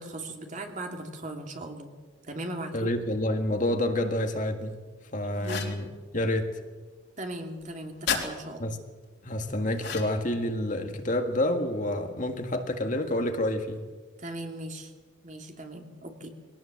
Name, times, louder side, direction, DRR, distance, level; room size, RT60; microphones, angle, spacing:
voice 1, 0.0-1.9 2.2-2.9 5.4-5.7 7.2-8.7 14.2-14.9 15.2-16.3, right 1 dB, 35° right, 3 dB, 2.8 m, -38 dB
voice 2, 2.7-4.8 5.1-5.9 6.1-6.5 8.6-8.8 9.2-13.8, left 1 dB, 40° left, 5 dB, 1.9 m, -28 dB
sound 1, 5.4-5.8 8.1-8.3 9.8-10.3, left 6 dB, 55° left, 3.5 m, -31 dB
23.0 x 18.5 x 7.5 m, 1.4 s
head